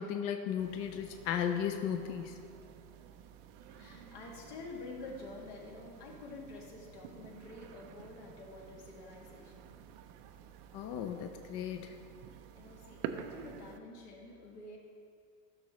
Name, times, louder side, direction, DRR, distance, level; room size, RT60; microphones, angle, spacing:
voice 1, 0.0-2.4 10.7-11.9, left 8 dB, 30° left, 6 dB, 0.4 m, -35 dB
sound 1, 0.6-13.8, right 8 dB, 35° right, 0.4 m, -50 dB
voice 2, 3.6-9.8 12.5-14.8, left 2 dB, 65° left, -1 dB, 2.1 m, -48 dB
13.5 x 6.3 x 3.0 m, 2.3 s
hypercardioid pair, 110°, 48 cm